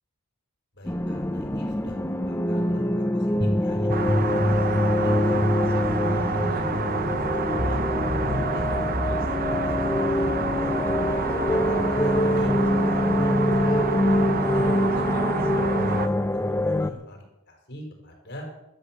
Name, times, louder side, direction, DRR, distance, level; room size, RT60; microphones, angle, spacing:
voice 1, 0.7-4.0 4.7-7.8 8.2-10.8 11.5-14.2 14.5-18.5, left 1 dB, 50° left, 2 dB, 5.0 m, -42 dB
sound 1, 0.9-16.9, left 1 dB, 10° left, 0.6 m, -24 dB
sound 2, 3.9-16.1, right 4 dB, 40° right, 0.9 m, -29 dB
12.5 x 12.0 x 7.5 m, 0.91 s
head